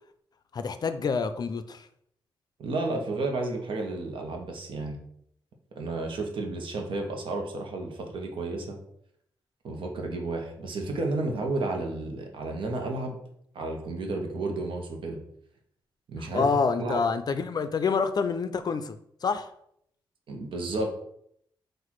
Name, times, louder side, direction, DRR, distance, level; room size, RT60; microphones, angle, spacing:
voice 1, 0.5-1.9 16.2-19.5, left 5 dB, 50° left, 10 dB, 0.4 m, -27 dB
voice 2, 2.6-5.0 5.8-8.8 9.6-13.2 13.5-15.2 16.1-16.5 16.8-17.0 20.3-20.9, right 2 dB, 75° right, 2 dB, 0.9 m, -32 dB
4.0 x 2.5 x 4.5 m, 0.71 s
cardioid pair, 85°, 9 cm